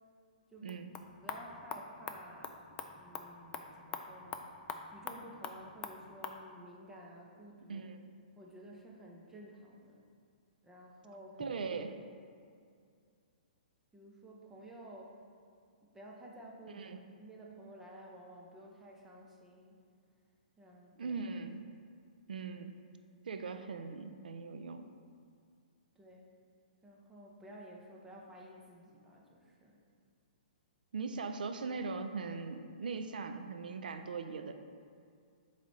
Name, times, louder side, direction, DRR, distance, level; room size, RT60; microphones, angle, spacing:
sound 1, 0.6-6.4, left 6 dB, 20° left, 0.4 m, -45 dB
voice 1, 1.2-2.7 2.9-4.4 4.9-7.9 8.4-10.0 10.6-11.4 13.9-15.1 15.9-16.9 17.2-19.8 20.6-21.2 25.9-26.3 26.8-29.8, right 1 dB, 10° right, -3 dB, 0.9 m, -53 dB
voice 2, 7.7-8.1 11.4-11.9 16.7-17.0 21.0-21.6 22.3-22.7 23.2-24.8 30.9-34.5, right 4 dB, 75° right, 7 dB, 0.5 m, -40 dB
8.2 x 3.3 x 4.0 m, 2.3 s
hypercardioid pair, 135°, 5 cm